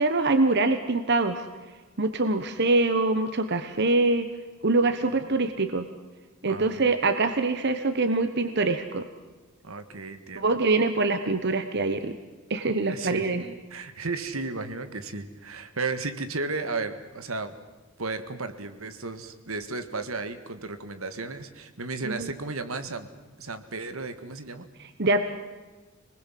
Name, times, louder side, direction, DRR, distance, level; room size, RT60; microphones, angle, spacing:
voice 1, 0.0-1.4 2.0-4.3 4.6-5.9 6.4-9.0 10.4-12.1 12.5-13.5 22.0-22.3 25.0-25.2, right 3 dB, 55° right, 9 dB, 1.1 m, -24 dB
voice 2, 6.5-6.9 9.6-10.6 12.8-13.3 13.7-17.5 18.0-23.1 23.4-24.7, right 3 dB, 75° right, 10 dB, 1.8 m, -34 dB
26.0 x 20.5 x 7.6 m, 1.3 s
head